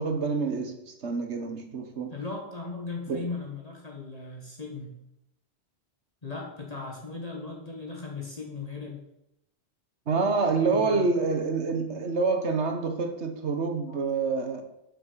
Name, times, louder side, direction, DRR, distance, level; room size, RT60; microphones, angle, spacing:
voice 1, 0.0-2.2 3.1-3.3 10.1-14.6, right 4 dB, 90° right, 5 dB, 1.7 m, -27 dB
voice 2, 2.1-5.0 6.2-9.0 10.7-11.0 11.9-12.0, left 4 dB, 35° left, -1 dB, 1.7 m, -37 dB
7.7 x 6.4 x 6.8 m, 0.84 s
omnidirectional pair, 1.1 m